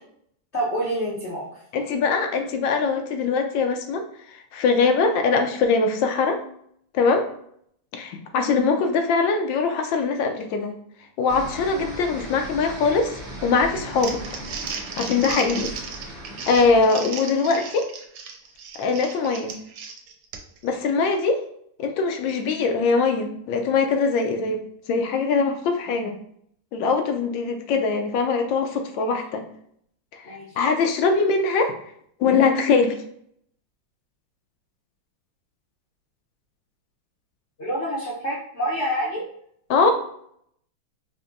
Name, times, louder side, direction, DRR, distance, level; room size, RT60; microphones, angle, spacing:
voice 1, 0.5-1.4 29.0-29.1 30.2-30.5 37.6-39.2, equal, 55° left, -5 dB, 0.8 m, -27 dB
voice 2, 1.7-4.0 4.5-6.4 6.9-7.3 7.9-10.7 11.2-13.1 13.4-14.2 15.0-15.7 16.5-17.9 18.8-19.5 20.6-21.4 21.8-24.6 24.9-26.2 26.7-29.4 30.3-31.7 32.2-33.0 39.7-39.9, left 4 dB, 80° left, 5 dB, 1.3 m, -22 dB
sound 1, 11.3-16.8, right 1 dB, 35° right, 1.2 m, -38 dB
Crumpling crinkling, 13.8-20.7, right 6 dB, 85° right, 1.4 m, -35 dB
5.1 x 2.6 x 2.5 m, 0.67 s
omnidirectional pair, 2.1 m